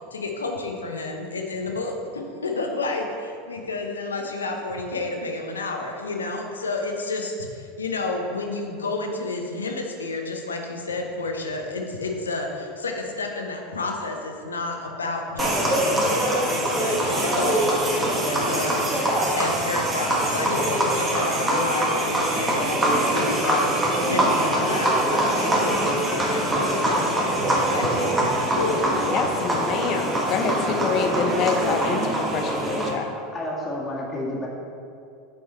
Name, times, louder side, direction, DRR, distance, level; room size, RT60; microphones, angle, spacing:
voice 1, 0.0-18.8 19.4-29.0, left 3 dB, 85° left, 2 dB, 0.8 m, -30 dB
sound 1, 15.4-32.9, right 1 dB, 15° right, 1.5 m, -23 dB
voice 2, 29.0-33.1, left 5 dB, 45° left, 5 dB, 0.7 m, -26 dB
voice 3, 33.3-34.5, left 1 dB, 20° left, -4 dB, 1.8 m, -30 dB
7.6 x 4.7 x 4.3 m, 2.5 s
hypercardioid pair, 85°, 0 cm